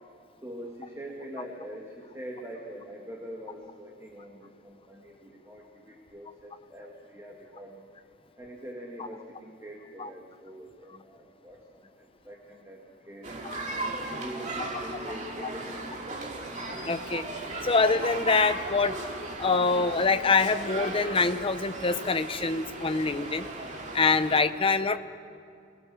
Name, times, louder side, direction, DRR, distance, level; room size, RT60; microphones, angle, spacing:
voice 1, 0.4-7.9 8.4-13.4 14.0-15.9, equal, 15° right, -1 dB, 1.9 m, -44 dB
sound 1, 13.2-24.4, right 2 dB, 40° right, 2.3 m, -36 dB
voice 2, 16.9-17.2 17.6-18.9 19.4-23.5 23.9-25.0, left 4 dB, 30° left, 11 dB, 0.7 m, -25 dB
28.0 x 19.5 x 6.3 m, 2.4 s
head